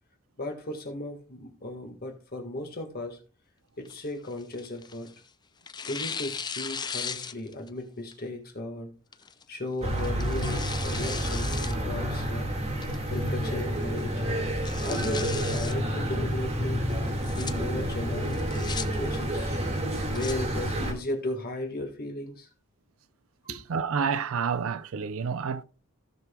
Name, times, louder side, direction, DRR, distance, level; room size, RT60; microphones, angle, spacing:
voice 1, 0.4-3.2 3.8-5.1 5.8-8.9 9.5-12.5 13.1-14.2 14.8-16.8 17.4-19.5 20.1-22.5 23.4-23.6, left 1 dB, 45° left, 1.6 m, -36 dB
Tearing, 3.8-5.2 5.7-7.7 8.1-8.2 9.1-9.4 10.0-11.8 12.1-12.2 12.8-13.2 13.6-13.7 14.0-14.1 14.5-15.7 17.0-17.5 18.3-18.8 19.8-20.3, left 6 dB, 20° left, 0.4 m, -37 dB
sound 1, 9.8-20.9, right 1 dB, 30° right, 1.9 m, -29 dB
voice 2, 23.5-25.6, right 6 dB, 65° right, 0.5 m, -29 dB
16.0 x 6.0 x 2.3 m
head